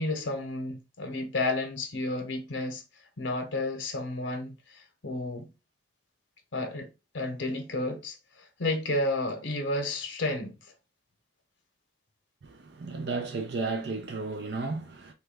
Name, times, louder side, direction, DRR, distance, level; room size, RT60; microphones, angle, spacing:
voice 1, 0.0-2.8 3.2-5.5 6.5-10.6, left 2 dB, 90° left, 0.7 m, -32 dB
voice 2, 12.4-15.1, right 3 dB, 65° right, 0.5 m, -33 dB
3.0 x 2.2 x 3.4 m
head